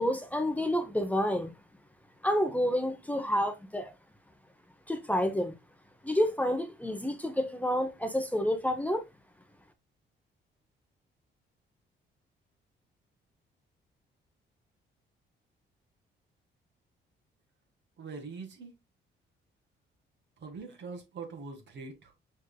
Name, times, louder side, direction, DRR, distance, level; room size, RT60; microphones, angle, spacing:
voice 1, 0.0-1.5 2.2-3.9 4.9-5.5 6.0-9.1, equal, 5° left, 0.8 m, -29 dB
voice 2, 18.0-18.7 20.4-22.1, right 4 dB, 65° right, 1.9 m, -43 dB
6.3 x 3.6 x 2.3 m
cardioid pair, 90°, 20 cm